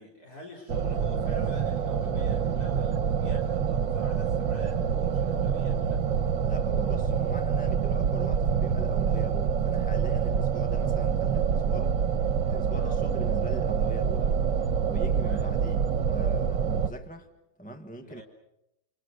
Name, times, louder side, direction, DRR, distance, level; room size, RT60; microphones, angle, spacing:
voice 1, 0.0-6.1 12.7-13.0 15.1-15.5 18.0-18.2, equal, 50° left, -1 dB, 4.6 m, -46 dB
sound 1, 0.7-16.9, right 7 dB, 70° right, 1.9 m, -26 dB
voice 2, 6.4-12.0 12.5-14.4 14.8-17.3 17.6-18.2, right 1 dB, 5° left, 6 dB, 1.3 m, -41 dB
28.5 x 28.0 x 6.5 m, 0.85 s
omnidirectional pair, 2.0 m